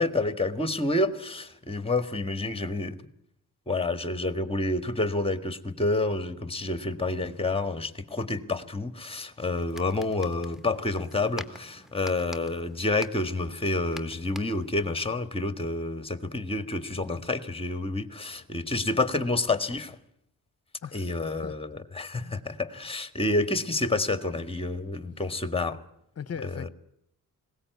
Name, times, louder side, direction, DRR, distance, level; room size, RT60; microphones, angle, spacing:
voice 1, 0.0-3.0 3.7-20.0 20.9-25.8 26.4-26.7, left 2 dB, 15° left, 1.8 m, -29 dB
sound 1, 9.5-15.0, left 1 dB, ahead, 1.5 m, -47 dB
voice 2, 20.8-21.5 22.1-22.4 26.2-26.7, left 7 dB, 45° left, 1.0 m, -39 dB
20.0 x 17.5 x 9.4 m
cardioid pair, 70°, 36 cm